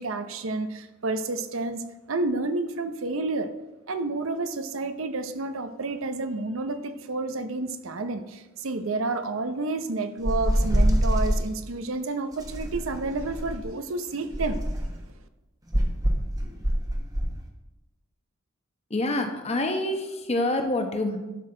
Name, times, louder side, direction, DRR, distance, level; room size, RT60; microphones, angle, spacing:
voice 1, 0.0-3.5 3.9-14.6, right 3 dB, 75° right, 10 dB, 0.7 m, -30 dB
sound 1, 10.2-11.5 12.4-13.7 14.3-15.0 15.7-17.4, equal, 20° right, 1.1 m, -25 dB
voice 2, 18.9-21.2, left 1 dB, 30° left, 5 dB, 0.9 m, -26 dB
12.0 x 6.2 x 3.8 m, 1.1 s
head